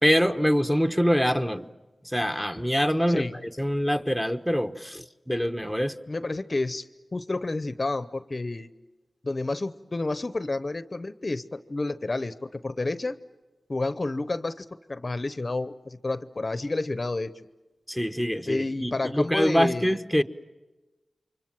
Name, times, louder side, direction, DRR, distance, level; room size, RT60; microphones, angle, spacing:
voice 1, 0.0-1.7 2.1-3.2 3.6-5.9 17.9-20.2, equal, 5° right, 6 dB, 1.1 m, -24 dB
voice 2, 3.1-3.4 6.1-8.7 9.2-13.2 13.7-17.5 18.5-20.2, left 2 dB, 35° left, 13 dB, 0.8 m, -30 dB
29.5 x 24.5 x 7.5 m, 1.1 s
wide cardioid pair, 80°, 0 cm